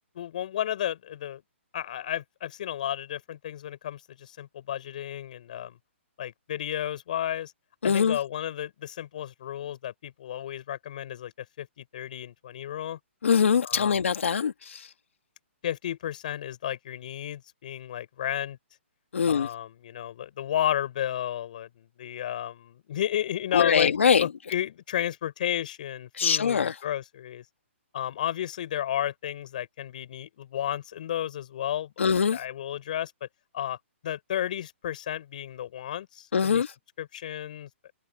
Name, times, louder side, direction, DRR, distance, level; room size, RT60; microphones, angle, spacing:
voice 1, 0.1-1.4 1.7-5.8 6.2-7.5 7.8-13.0 13.6-14.0 15.6-18.6 19.3-23.9 24.2-27.4 27.9-33.3 33.5-33.8 34.0-36.6 37.0-37.7, left 11 dB, 35° left, 6.3 m, -32 dB
voice 2, 7.8-8.2 13.2-14.8 19.1-19.5 23.5-24.3 26.2-26.7 32.0-32.4 36.3-36.7, left 6 dB, 70° left, 2.1 m, -23 dB
hypercardioid pair, 175°, 7 cm